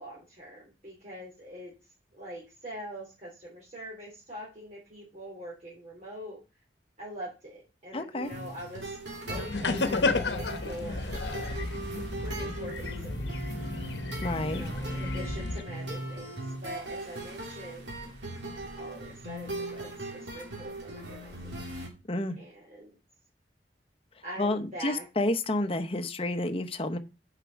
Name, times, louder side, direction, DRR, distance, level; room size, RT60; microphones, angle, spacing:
voice 1, 0.0-1.7 2.2-6.4 7.0-9.0 9.3-11.2 12.2-13.3 14.4-17.9 18.7-21.6 22.4-23.0 24.2-25.0, equal, 40° right, 3.0 m, -43 dB
voice 2, 7.9-8.3 14.2-14.7 22.1-22.4 24.4-27.0, left 2 dB, 30° left, 0.9 m, -30 dB
sound 1, 8.2-21.9, right 1 dB, 85° right, 2.8 m, -39 dB
sound 2, 9.3-15.6, left 3 dB, 75° left, 1.0 m, -32 dB
6.8 x 5.8 x 6.2 m
head